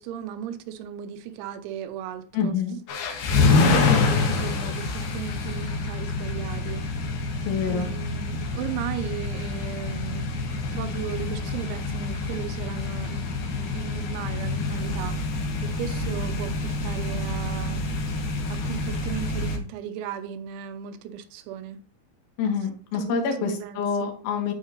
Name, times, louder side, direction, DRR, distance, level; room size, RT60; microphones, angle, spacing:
voice 1, 0.0-2.6 3.1-6.8 7.7-15.2 15.6-17.9 18.5-21.8 22.9-24.1, right 9 dB, 85° right, 3.1 m, -36 dB
voice 2, 2.3-2.8 7.5-7.9 22.4-24.5, left 6 dB, 85° left, 3.9 m, -27 dB
sound 1, 2.9-19.6, left 3 dB, 65° left, 2.2 m, -27 dB
11.5 x 4.8 x 2.9 m
omnidirectional pair, 5.4 m